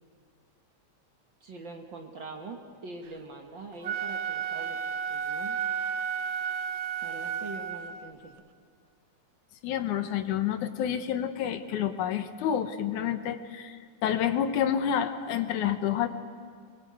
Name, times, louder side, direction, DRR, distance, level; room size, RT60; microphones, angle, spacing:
voice 1, 1.4-5.6 7.0-8.4, right 3 dB, 50° right, 3 dB, 1.7 m, -43 dB
Wind instrument woodwind instrument, 3.7-8.1, right 7 dB, 70° right, 2.1 m, -32 dB
voice 2, 9.6-16.1, left 9 dB, 80° left, 9 dB, 2.5 m, -29 dB
24.0 x 21.5 x 8.6 m, 2.1 s
omnidirectional pair, 3.4 m